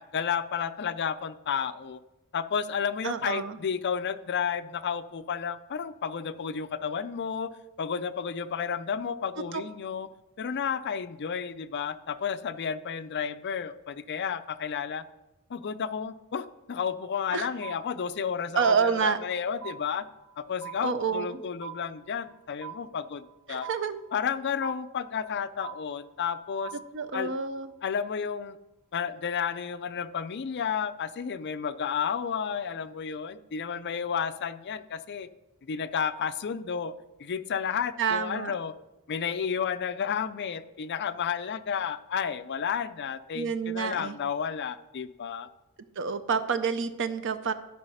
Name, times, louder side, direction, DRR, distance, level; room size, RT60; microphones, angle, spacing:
voice 1, 0.0-2.0 2.3-7.5 7.8-10.1 10.4-15.0 15.5-20.1 20.4-23.7 24.1-26.7 27.1-27.3 27.8-28.6 28.9-35.3 35.7-36.9 37.2-38.7 39.1-45.5, left 7 dB, 50° left, 12 dB, 0.5 m, -32 dB
voice 2, 3.0-3.6 9.5-9.6 17.3-17.5 18.5-19.2 20.8-21.4 23.5-24.0 26.9-27.7 38.0-38.5 43.3-44.2 46.0-47.5, right 6 dB, 55° right, 11 dB, 0.6 m, -28 dB
sound 1, 17.6-18.3 18.6-19.3 19.6-20.3 20.6-21.3 21.6-22.3 22.6-23.3 23.6-24.3 24.6-25.3 25.6-26.3 26.6-27.3, right 9 dB, 85° right, 1.8 m, -43 dB
13.0 x 4.9 x 5.5 m, 0.98 s
head